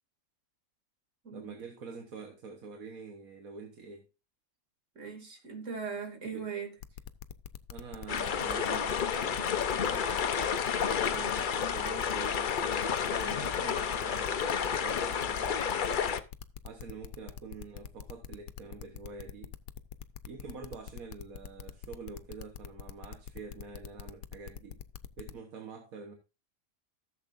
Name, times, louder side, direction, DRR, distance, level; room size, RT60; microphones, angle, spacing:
voice 1, 1.3-4.1 6.3-6.5 7.7-10.1 11.1-16.1 16.6-19.5 20.3-24.8 25.2-26.1, right 4 dB, 75° right, 1.6 m, -46 dB
voice 2, 5.0-6.7, right 6 dB, 60° right, 2.9 m, -39 dB
sound 1, 6.8-25.3, left 9 dB, 90° left, 1.1 m, -44 dB
sound 2, 8.1-16.2, left 7 dB, 50° left, 0.7 m, -30 dB
14.5 x 7.3 x 2.6 m
omnidirectional pair, 1.5 m